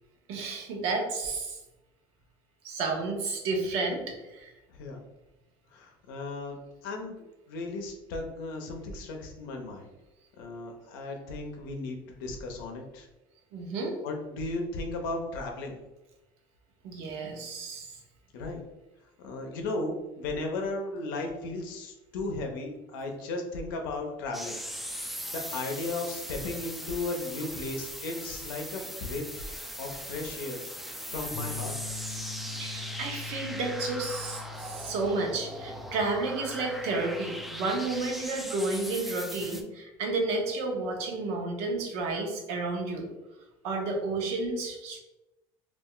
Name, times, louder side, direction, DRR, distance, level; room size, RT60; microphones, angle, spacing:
voice 1, 0.3-1.6 2.6-4.5 13.5-14.0 16.8-18.0 32.6-43.1 43.6-45.0, right 3 dB, 70° right, 1 dB, 0.7 m, -31 dB
voice 2, 4.7-5.0 5.7-7.2 7.5-9.9 10.4-13.1 14.0-15.8 18.3-18.6 19.2-24.6 24.9-29.2 29.6-30.6 31.1-31.8, left 2 dB, 85° left, 3 dB, 0.6 m, -35 dB
sound 1, 24.3-39.6, equal, ahead, 0.3 m, -39 dB
sound 2, 31.3-38.0, left 5 dB, 40° left, 0.8 m, -43 dB
2.4 x 2.1 x 3.7 m, 1.0 s
supercardioid pair, 110°, 11 cm